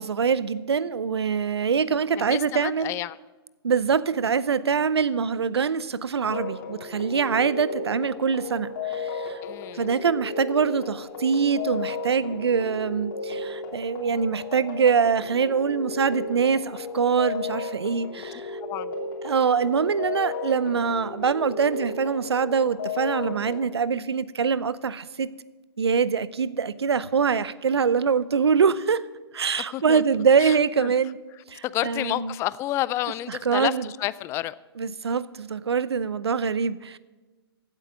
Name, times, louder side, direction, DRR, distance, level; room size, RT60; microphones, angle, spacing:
voice 1, 0.0-2.9 3.6-9.4 9.7-18.6 19.2-25.3 25.8-29.0 29.3-31.2 31.5-32.3 33.3-33.9 34.8-37.0, right 6 dB, 80° right, 18 dB, 0.6 m, -24 dB
voice 2, 2.3-3.2 9.4-9.8 18.6-18.9 29.7-30.0 30.4-30.6 30.8-30.9 31.7-34.5, left 15 dB, 20° left, 18 dB, 0.3 m, -29 dB
sound 1, 6.3-23.7, left 4 dB, 50° left, 3.2 m, -34 dB
15.5 x 8.4 x 6.3 m, 1.2 s
figure-of-eight pair, 120°, 13 cm